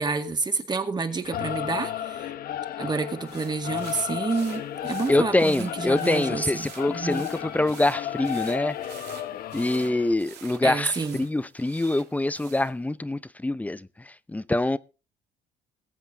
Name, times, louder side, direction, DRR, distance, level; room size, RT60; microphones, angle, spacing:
voice 1, 0.0-2.3 2.8-7.3 10.6-11.2, right 4 dB, 25° right, 2.0 m, -29 dB
Singing / Musical instrument, 1.2-10.1, left 11 dB, 60° left, 1.1 m, -34 dB
sound 1, 3.3-12.8, right 10 dB, 80° right, 2.3 m, -48 dB
voice 2, 5.1-8.8 9.5-14.8, left 2 dB, 10° left, 0.6 m, -25 dB
21.0 x 8.0 x 3.9 m
cardioid pair, 110°, 17 cm